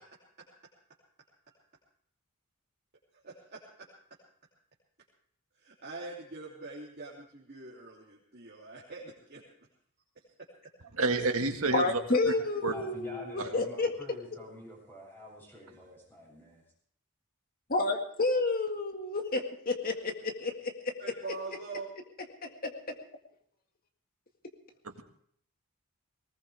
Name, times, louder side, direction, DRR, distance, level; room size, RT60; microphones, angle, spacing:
voice 1, 3.2-3.9 5.6-9.4 21.0-21.9, right 3 dB, 45° right, -5 dB, 2.8 m, -43 dB
voice 2, 11.0-12.0 12.6-12.7 13.4-13.5 24.9-25.0, right 3 dB, 70° right, 5 dB, 1.8 m, -29 dB
voice 3, 11.7-13.9 17.7-20.7 22.4-22.7, left 3 dB, 40° left, 4 dB, 1.9 m, -30 dB
voice 4, 12.2-16.6, equal, 10° left, -3 dB, 7.9 m, -47 dB
20.0 x 19.0 x 3.5 m, 0.63 s
head